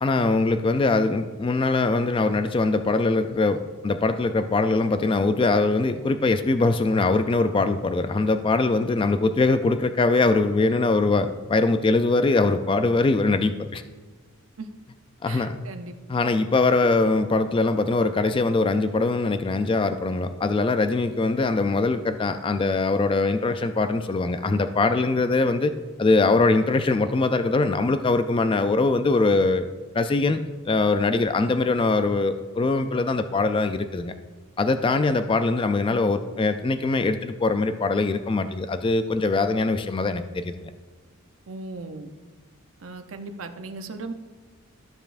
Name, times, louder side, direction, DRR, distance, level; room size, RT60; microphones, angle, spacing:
voice 1, 0.0-13.8 15.2-15.6 16.1-25.7 26.0-29.7 29.9-34.1 34.6-40.7, left 3 dB, 25° left, 9 dB, 0.3 m, -22 dB
voice 2, 15.2-15.9 41.5-42.1 42.8-44.1, right 3 dB, 60° right, 7 dB, 0.7 m, -37 dB
13.0 x 6.9 x 2.5 m, 1.4 s
head